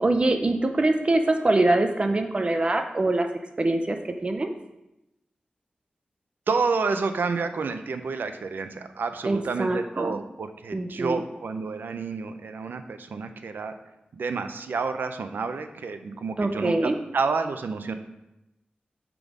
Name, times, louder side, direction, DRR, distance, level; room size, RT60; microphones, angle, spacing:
voice 1, 0.0-3.3 3.6-4.0 4.2-4.5 9.3-10.2 10.7-11.2 16.4-16.9, right 2 dB, 35° right, 5 dB, 0.5 m, -23 dB
voice 2, 6.5-13.8 14.1-17.9, right 4 dB, 90° right, 8 dB, 0.5 m, -29 dB
6.0 x 5.3 x 4.8 m, 0.91 s
wide cardioid pair, 120°, 3 cm